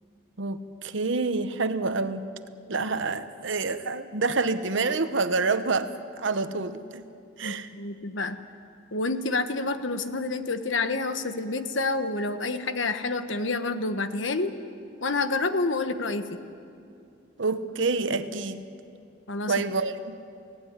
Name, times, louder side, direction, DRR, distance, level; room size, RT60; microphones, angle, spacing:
voice 1, 0.4-2.3 2.7-7.0 7.4-7.7 17.4-18.6 19.4-20.2, right 3 dB, 80° right, 11 dB, 1.0 m, -27 dB
voice 2, 7.4-8.4 8.9-14.5 15.0-16.4 19.3-19.5, left 3 dB, 80° left, 9 dB, 1.2 m, -28 dB
23.0 x 17.5 x 9.7 m, 2.5 s
head